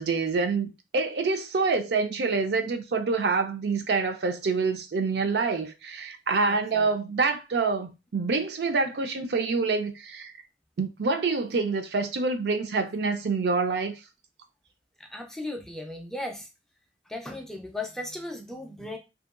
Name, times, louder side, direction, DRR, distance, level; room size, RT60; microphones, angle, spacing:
voice 1, 0.0-10.3 10.8-14.0, right 4 dB, 60° right, 0.4 m, -26 dB
voice 2, 6.4-6.9 15.0-16.5 17.1-19.0, left 2 dB, 5° left, 0.3 m, -36 dB
2.7 x 2.2 x 2.4 m
head